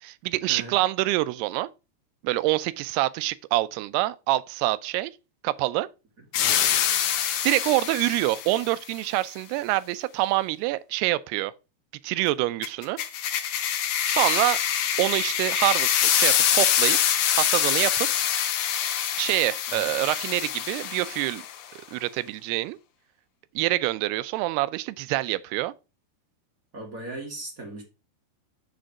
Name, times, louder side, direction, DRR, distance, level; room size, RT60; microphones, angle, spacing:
voice 1, 0.0-1.7 2.2-5.1 5.4-5.9 7.4-11.5 12.0-13.0 14.1-14.6 15.0-17.0 17.4-18.1 19.2-21.4 21.9-22.8 23.6-25.7, right 17 dB, 85° right, 2.6 m, -26 dB
sound 1, 6.3-8.7 12.6-21.6, left 10 dB, 75° left, 1.9 m, -25 dB
voice 2, 26.7-27.8, right 2 dB, 30° right, 1.6 m, -37 dB
6.6 x 5.1 x 5.8 m
omnidirectional pair, 4.6 m